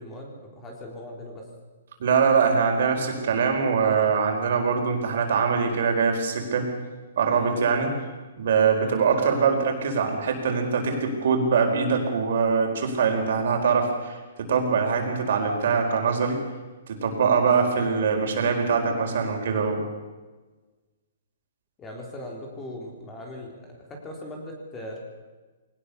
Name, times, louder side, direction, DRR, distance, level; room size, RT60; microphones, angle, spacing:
voice 1, 0.0-1.5 7.3-7.6 8.8-9.1 17.4-17.7 18.8-19.3 21.8-25.0, left 1 dB, 15° left, 1 dB, 3.6 m, -40 dB
voice 2, 2.0-6.7 7.2-7.9 8.4-16.4 16.9-19.8, right 5 dB, 60° right, 3 dB, 4.7 m, -23 dB
21.5 x 18.5 x 6.9 m, 1.3 s
hypercardioid pair, 165°, 0 cm